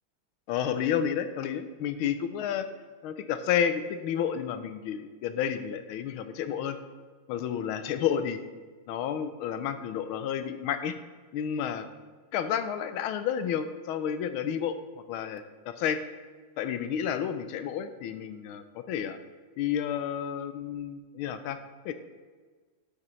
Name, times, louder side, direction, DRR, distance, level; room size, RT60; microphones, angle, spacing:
voice 1, 0.5-2.7 3.0-6.8 7.3-8.4 8.9-10.9 11.3-11.9 12.3-14.8 15.1-16.0 16.6-19.2 19.6-21.6 21.8-21.9, left 8 dB, 85° left, 10 dB, 1.5 m, -31 dB
12.0 x 6.9 x 3.2 m, 1.4 s
omnidirectional pair, 2.3 m